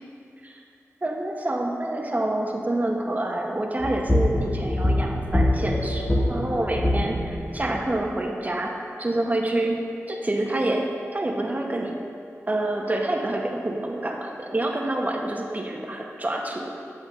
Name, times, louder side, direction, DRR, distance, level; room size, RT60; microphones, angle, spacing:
voice 1, 1.0-9.8 10.1-12.0 12.5-16.7, right 1 dB, 30° right, 1 dB, 0.8 m, -27 dB
sound 1, 3.8-7.9, left 1 dB, 15° left, 1.0 m, -24 dB
8.1 x 7.9 x 2.5 m, 2.5 s
cardioid pair, 50°, 5 cm